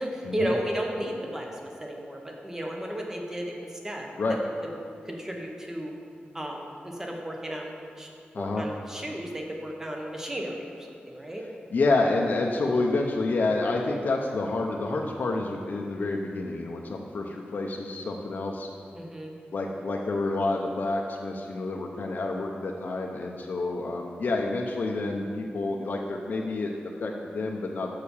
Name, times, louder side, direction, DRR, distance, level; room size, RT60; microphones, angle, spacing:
voice 1, 0.0-4.1 5.0-5.9 6.3-8.1 8.4-11.4 18.9-19.3, equal, 15° right, 1 dB, 0.9 m, -34 dB
voice 2, 11.7-18.7 19.5-26.7 27.0-27.9, left 2 dB, 55° left, 0 dB, 0.6 m, -28 dB
6.6 x 5.6 x 7.0 m, 2.3 s
wide cardioid pair, 160°, 4 cm